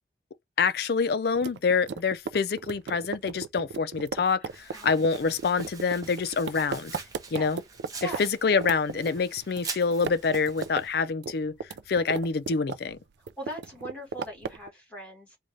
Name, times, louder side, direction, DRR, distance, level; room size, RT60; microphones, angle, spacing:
voice 1, 0.6-6.9 7.3-7.6 8.0-11.5 11.9-13.0, left 5 dB, 55° left, 0.4 m, -26 dB
sound 1, 1.3-8.2 8.5-9.6 9.9-10.9 11.1-13.0 13.3-14.7, right 5 dB, 65° right, 0.3 m, -35 dB
voice 2, 4.4-5.0 7.3-7.5 8.0-8.3 13.2-15.4, right 2 dB, 5° left, 2.3 m, -40 dB
Domestic sounds home sounds, 4.5-10.9, right 4 dB, 20° right, 0.7 m, -44 dB
3.9 x 2.3 x 3.1 m
head